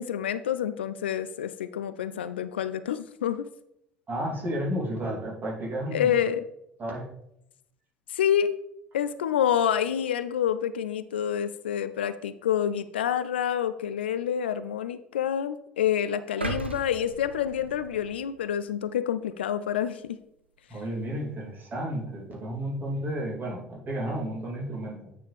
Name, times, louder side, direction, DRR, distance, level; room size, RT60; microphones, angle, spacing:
voice 1, 0.0-3.5 5.9-6.5 8.1-8.6 8.9-20.2, left 9 dB, 75° left, 13 dB, 0.3 m, -28 dB
voice 2, 4.1-6.2 6.8-7.1 20.7-25.0, right 1 dB, 35° right, -2 dB, 2.6 m, -32 dB
sound 1, 16.4-18.6 19.0-19.2, right 3 dB, 90° right, 0.6 m, -37 dB
8.8 x 5.0 x 3.3 m, 0.77 s
figure-of-eight pair, 65°, 6 cm